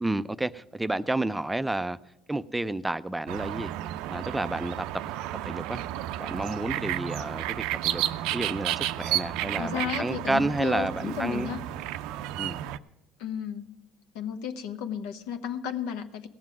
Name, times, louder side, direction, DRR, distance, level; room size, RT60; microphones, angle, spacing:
voice 1, 0.0-2.0 2.3-3.8 4.1-5.1 5.4-5.8 6.2-8.0 8.3-11.5 12.4-12.6, right 2 dB, 10° right, 13 dB, 0.4 m, -30 dB
sound 1, 3.3-12.8, right 13 dB, 75° right, 0.4 m, -32 dB
voice 2, 9.6-11.6 13.2-13.7 14.1-16.3, left 8 dB, 80° left, 8 dB, 1.0 m, -33 dB
17.0 x 7.5 x 6.1 m, 0.99 s
supercardioid pair, 100°, 0 cm